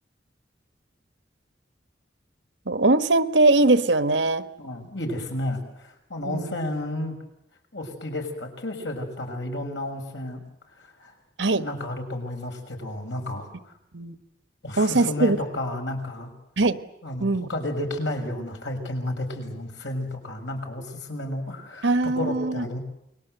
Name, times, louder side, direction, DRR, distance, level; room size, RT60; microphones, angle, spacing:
voice 1, 2.7-4.4 6.3-6.6 11.4-11.7 13.9-14.2 14.8-15.4 16.6-16.8 17.2-17.5 21.8-22.6, right 2 dB, 85° right, 11 dB, 1.3 m, -21 dB
voice 2, 4.6-7.1 7.7-10.4 10.7-11.2 11.5-13.7 14.6-16.3 17.0-21.9 22.2-22.8, left 1 dB, 85° left, 4 dB, 6.5 m, -32 dB
29.5 x 21.5 x 8.0 m, 0.79 s
head